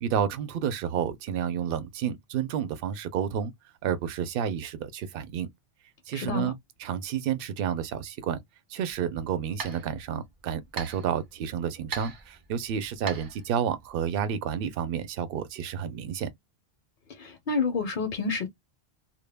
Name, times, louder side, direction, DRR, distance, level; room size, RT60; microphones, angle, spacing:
voice 1, 0.0-3.5 3.8-5.5 6.1-8.4 8.7-16.3, right 8 dB, 65° right, 0.7 m, -30 dB
voice 2, 6.1-6.5 17.1-18.5, left 4 dB, 60° left, 0.6 m, -29 dB
sound 1, 8.9-14.1, right 4 dB, 30° right, 0.4 m, -42 dB
2.1 x 2.1 x 3.2 m
omnidirectional pair, 1.1 m